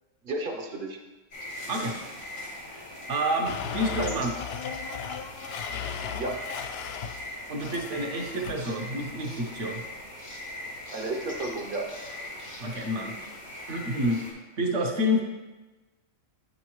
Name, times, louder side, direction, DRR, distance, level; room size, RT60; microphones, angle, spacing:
voice 1, 0.2-1.0 6.0-6.5 10.9-11.8, right 2 dB, 45° right, 3 dB, 0.9 m, -33 dB
sound 1, 1.3-14.3, left 1 dB, 80° left, 2.0 m, -40 dB
voice 2, 2.7-4.3 7.5-9.8 12.6-13.1 13.7-14.2 14.6-15.2, equal, 65° right, 2 dB, 1.2 m, -28 dB
Domestic sounds home sounds, 3.4-7.2 7.6-8.5, left 7 dB, 65° left, 0.6 m, -36 dB
9.0 x 5.5 x 3.1 m, 1.2 s
omnidirectional pair, 1.4 m